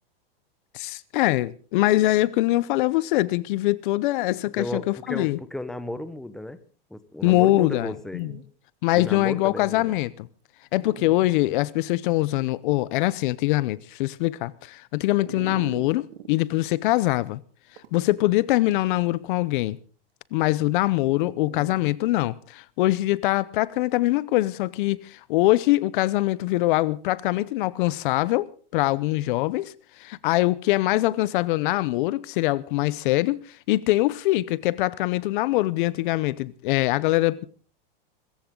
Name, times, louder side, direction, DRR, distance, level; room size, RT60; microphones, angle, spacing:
voice 1, 0.7-5.4 7.2-8.3 8.8-10.3 10.7-17.4 17.9-19.8 20.3-37.4, left 18 dB, 60° left, 0.8 m, -23 dB
voice 2, 4.5-6.6 6.9-8.2 8.9-9.9, left 1 dB, ahead, 1.1 m, -34 dB
Dog, 7.8-7.9 8.1-8.4 9.1-9.2 9.9-10.0 10.7-11.3 11.8-11.9 15.3-16.3 17.8-18.3 21.2-21.8, right 8 dB, 80° right, 2.5 m, -41 dB
24.0 x 14.5 x 3.8 m
supercardioid pair, 140°, 29 cm